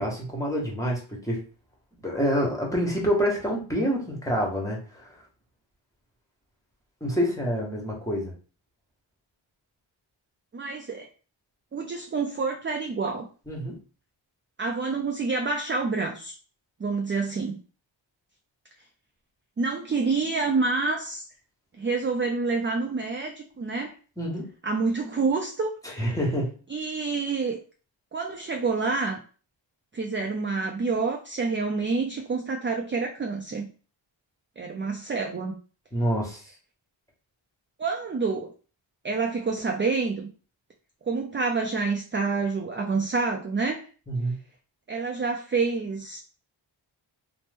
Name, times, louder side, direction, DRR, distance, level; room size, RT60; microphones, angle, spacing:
voice 1, 0.0-1.4 2.0-5.2 7.0-8.3 13.5-13.8 24.2-24.5 25.8-26.5 35.9-36.4 44.1-44.4, equal, 5° left, -2 dB, 1.0 m, -27 dB
voice 2, 10.5-11.1 11.7-13.3 14.6-16.3 16.8-17.6 19.6-21.2 21.8-23.9 24.6-25.7 26.7-27.6 28.1-29.2 29.9-33.7 34.6-35.6 37.8-38.5 39.0-40.3 41.1-43.9 44.9-46.2, right 4 dB, 30° right, 2 dB, 0.3 m, -27 dB
2.9 x 2.0 x 3.3 m, 0.37 s
wide cardioid pair, 100°, 47 cm